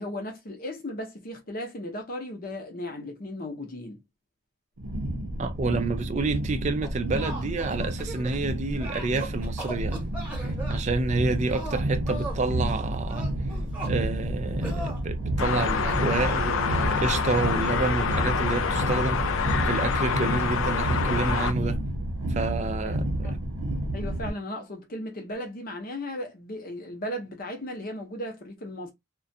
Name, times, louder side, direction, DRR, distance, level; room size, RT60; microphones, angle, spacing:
voice 1, 0.0-4.0 22.8-23.4 23.9-28.9, left 1 dB, 45° left, 0.7 m, -36 dB
sound 1, 4.8-24.3, right 1 dB, 90° right, 0.7 m, -30 dB
voice 2, 5.4-10.1 10.7-13.3 13.9-21.8 22.3-23.4, right 3 dB, 35° right, 0.4 m, -29 dB
sound 2, 6.8-8.4 8.8-10.8 11.5-12.4 13.1-14.0 14.6-15.0 15.8-16.5, right 2 dB, 10° right, 1.0 m, -38 dB
sound 3, 15.4-21.5, left 6 dB, 70° left, 0.3 m, -27 dB
2.3 x 2.2 x 2.6 m
head